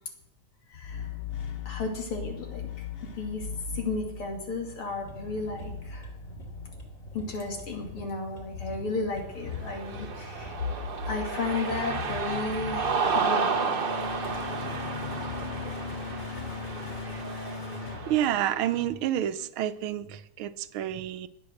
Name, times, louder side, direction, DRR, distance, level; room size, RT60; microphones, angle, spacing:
voice 1, 0.7-1.0 1.7-2.7 3.2-3.5 3.7-6.1 7.1-10.8 11.1-13.8, left 3 dB, 90° left, 1 dB, 3.5 m, -33 dB
sound 1, 0.7-18.9, left 6 dB, 60° left, 0.6 m, -39 dB
sound 2, 5.0-10.6, right 1 dB, 20° left, 2.9 m, -46 dB
Cheering, 9.5-18.7, right 5 dB, 45° right, 0.7 m, -32 dB
voice 2, 18.1-21.3, right 11 dB, 80° right, 11 dB, 1.6 m, -29 dB
20.0 x 7.7 x 6.4 m, 0.82 s
omnidirectional pair, 2.3 m